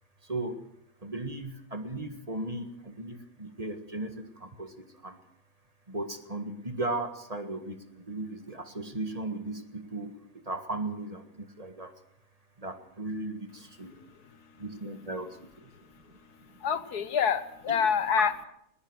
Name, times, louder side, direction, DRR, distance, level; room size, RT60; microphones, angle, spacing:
voice 1, 0.2-0.7 1.0-5.2 5.9-10.2 10.4-11.9 12.6-13.9 14.6-15.7 16.5-16.6, right 2 dB, 25° right, 7 dB, 1.7 m, -37 dB
voice 2, 16.3-18.4, left 7 dB, 85° left, 12 dB, 1.8 m, -27 dB
20.5 x 20.0 x 6.3 m, 0.74 s
omnidirectional pair, 1.6 m